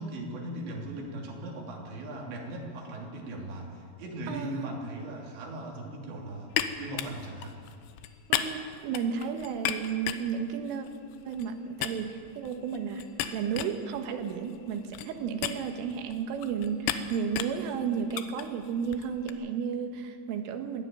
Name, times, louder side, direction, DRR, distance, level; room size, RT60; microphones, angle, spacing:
voice 1, 0.0-7.5, right 1 dB, 65° right, -1 dB, 5.1 m, -38 dB
voice 2, 4.3-4.7 8.3-10.9 11.3-20.8, right 7 dB, 85° right, 6 dB, 4.0 m, -33 dB
sound 1, 6.5-11.5 11.8-19.3, left 10 dB, 80° left, 3.3 m, -36 dB
21.5 x 15.5 x 9.2 m, 2.2 s
omnidirectional pair, 5.6 m